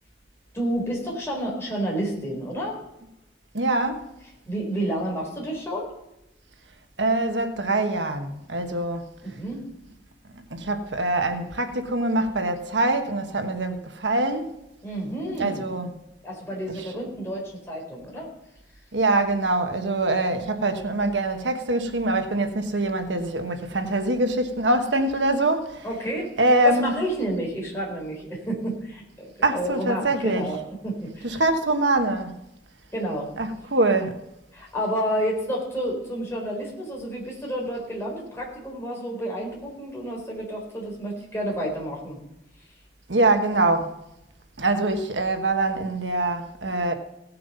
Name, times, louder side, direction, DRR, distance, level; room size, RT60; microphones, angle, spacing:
voice 1, 0.5-2.8 4.4-5.9 9.2-9.6 14.8-15.7 16.2-18.3 25.8-26.3 26.6-30.6 30.8-31.4 32.9-33.3 34.5-42.2, right 1 dB, 15° left, 4.2 m, -30 dB
voice 2, 3.5-4.1 7.0-9.0 10.5-14.5 15.4-15.9 16.7-16.9 18.9-25.8 26.4-27.0 29.4-30.5 31.2-32.3 33.4-34.2 43.1-43.9 44.6-46.9, right 2 dB, 90° right, 1.3 m, -24 dB
17.0 x 7.6 x 5.5 m
head